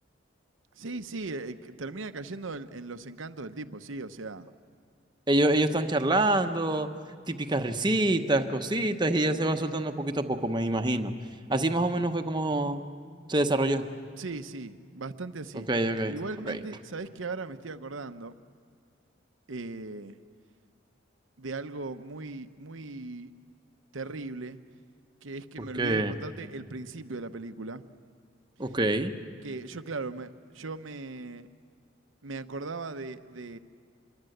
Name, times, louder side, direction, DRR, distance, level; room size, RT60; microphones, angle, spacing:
voice 1, 0.8-4.5 14.2-15.7 16.1-18.3 19.5-20.2 21.4-23.3 23.9-24.6 25.2-27.8 29.4-31.5 32.2-33.6, right 3 dB, 90° right, 10 dB, 0.9 m, -38 dB
voice 2, 5.3-6.9 7.3-11.1 11.5-12.8 13.3-13.8 15.7-16.2 16.5-16.6 25.6-26.1 28.6-29.1, right 1 dB, 25° right, 6 dB, 1.0 m, -26 dB
26.0 x 22.5 x 7.9 m, 2.1 s
head